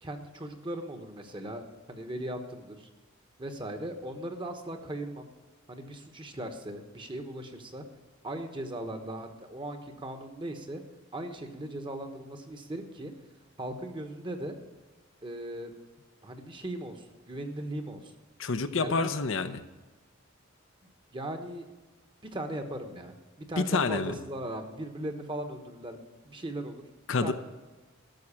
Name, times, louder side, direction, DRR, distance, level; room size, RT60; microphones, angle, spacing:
voice 1, 0.0-2.9 3.4-5.3 5.7-7.8 8.2-10.8 11.1-13.1 13.6-14.6 15.2-15.7 16.2-18.1 18.8-19.1 20.8-21.7 22.3-26.8 27.2-27.3, right 1 dB, 25° right, 6 dB, 1.2 m, -38 dB
voice 2, 18.4-19.6 23.6-24.2 27.1-27.3, left 4 dB, 65° left, 9 dB, 0.7 m, -28 dB
13.5 x 6.5 x 8.6 m, 1.2 s
head